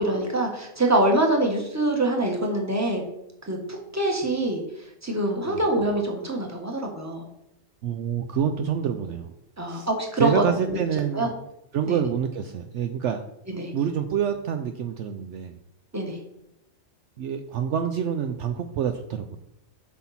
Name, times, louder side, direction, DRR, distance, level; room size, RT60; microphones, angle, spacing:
voice 1, 0.0-3.0 3.4-4.6 5.0-7.3 9.6-11.3 11.9-12.0 13.5-13.7 15.9-16.2, right 1 dB, 15° right, 1 dB, 1.3 m, -25 dB
voice 2, 7.8-9.3 9.7-9.9 10.2-11.3 11.7-13.2 13.7-15.5 17.2-19.4, right 8 dB, 70° right, 7 dB, 0.8 m, -27 dB
8.4 x 5.7 x 4.2 m, 0.82 s
omnidirectional pair, 1.4 m